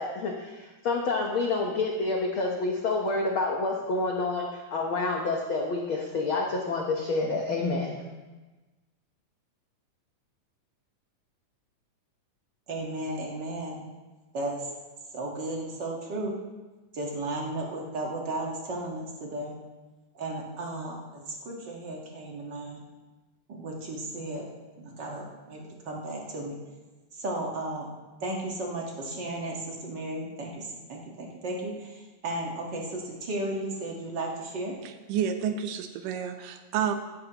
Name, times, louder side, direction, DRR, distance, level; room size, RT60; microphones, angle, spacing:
voice 1, 0.0-8.0, left 3 dB, 75° left, 0 dB, 1.2 m, -28 dB
voice 2, 12.7-13.8 14.3-14.7 15.1-16.3 16.9-19.5 20.1-22.8 23.5-24.5 24.7-26.6 27.1-27.9 28.2-34.7, right 2 dB, 45° right, -1 dB, 1.6 m, -34 dB
voice 3, 34.8-36.9, right 8 dB, 85° right, 7 dB, 2.5 m, -30 dB
16.0 x 11.0 x 3.0 m, 1.2 s
omnidirectional pair, 3.8 m